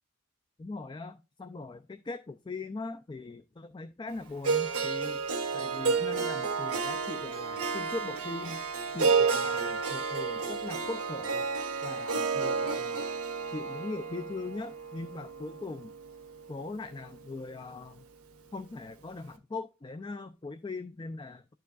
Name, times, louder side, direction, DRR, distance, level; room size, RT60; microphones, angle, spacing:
voice 1, 0.6-5.2 5.5-8.6 8.9-11.5 11.8-13.0 13.5-15.9 16.5-18.0 18.5-21.5, left 3 dB, 20° left, 0.3 m, -40 dB
Harp, 4.4-16.6, right 5 dB, 80° right, 1.3 m, -31 dB
11.5 x 4.6 x 2.4 m
head